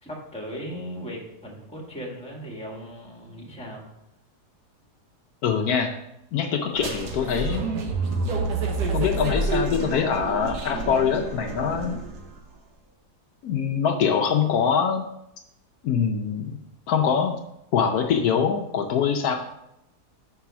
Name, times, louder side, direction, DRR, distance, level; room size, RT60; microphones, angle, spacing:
voice 1, 0.0-3.9, equal, 5° left, -2 dB, 1.5 m, -37 dB
voice 2, 5.4-5.9 6.3-7.7 8.9-12.0 13.4-15.0 15.8-16.6 16.9-17.4 17.7-19.3, left 7 dB, 70° left, 3 dB, 1.1 m, -23 dB
sound 1, 6.8-12.3, right 3 dB, 80° right, 1.5 m, -28 dB
5.9 x 4.7 x 5.8 m, 0.83 s
omnidirectional pair, 1.7 m